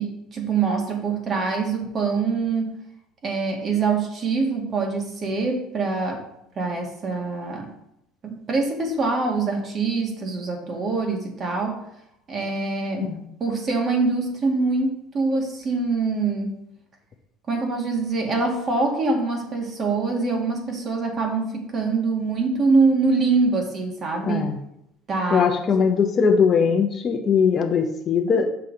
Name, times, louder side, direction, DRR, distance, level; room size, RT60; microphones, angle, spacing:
voice 1, 0.0-2.7 3.2-6.2 6.5-7.7 8.2-11.8 12.3-13.1 13.4-16.5 17.5-24.5 25.1-25.5 25.8-25.9, right 4 dB, 35° right, 2 dB, 1.8 m, -24 dB
voice 2, 24.2-24.6 25.3-28.5, left 6 dB, 35° left, 3 dB, 0.8 m, -20 dB
6.8 x 5.8 x 3.9 m, 0.78 s
cardioid pair, 125°, 0 cm